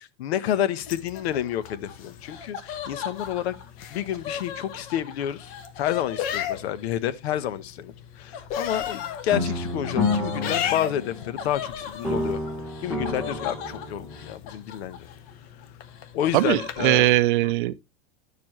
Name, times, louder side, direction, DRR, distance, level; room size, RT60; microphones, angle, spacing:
voice 1, 0.0-3.5 3.9-12.4 12.8-15.1 16.1-17.2 17.4-17.5, left 11 dB, 75° left, 1.1 m, -29 dB
sound 1, 0.8-17.2, left 10 dB, 30° left, 0.7 m, -37 dB
Laughter, 0.9-6.9 8.3-15.3 15.6-17.0, left 8 dB, 60° left, 2.0 m, -39 dB
sound 2, 9.3-11.7 12.0-14.3, left 2 dB, ahead, 1.1 m, -29 dB
voice 2, 16.3-17.8, right 16 dB, 55° right, 0.5 m, -20 dB
10.5 x 6.8 x 3.1 m
supercardioid pair, 170°, 32 cm